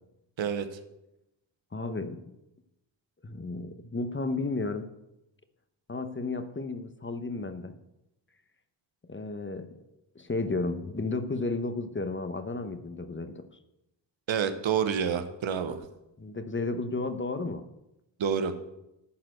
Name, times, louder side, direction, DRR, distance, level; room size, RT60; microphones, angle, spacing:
voice 1, 0.4-0.8 14.3-15.9 18.2-18.5, right 7 dB, 85° right, 9 dB, 1.0 m, -28 dB
voice 2, 1.7-2.3 3.2-4.9 5.9-7.8 9.1-9.7 10.1-13.5 16.2-17.6, left 3 dB, 25° left, 10 dB, 0.9 m, -33 dB
11.0 x 4.3 x 7.8 m, 0.90 s
cardioid pair, 55°, 46 cm